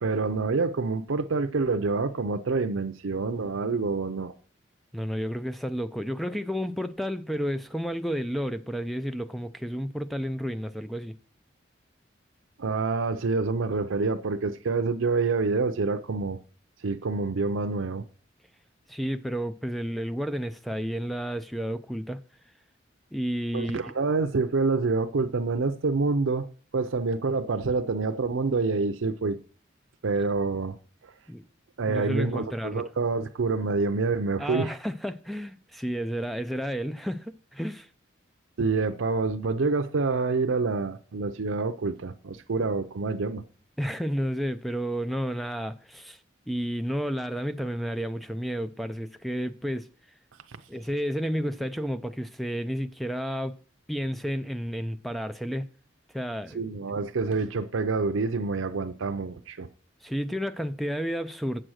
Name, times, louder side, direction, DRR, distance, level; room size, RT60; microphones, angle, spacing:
voice 1, 0.0-4.3 12.6-16.4 16.8-18.0 23.5-26.5 26.7-29.4 30.0-30.8 31.0-31.1 31.8-34.8 38.6-43.4 50.5-50.6 56.5-59.7, right 4 dB, 85° right, 0.6 m, -27 dB
voice 2, 4.9-11.2 18.9-22.2 23.1-23.9 31.3-31.4 31.9-32.8 34.4-37.9 43.8-46.2 46.5-49.9 50.7-53.6 53.9-55.7 56.1-56.6 60.0-61.6, equal, ahead, 0.3 m, -31 dB
7.7 x 7.6 x 6.3 m
head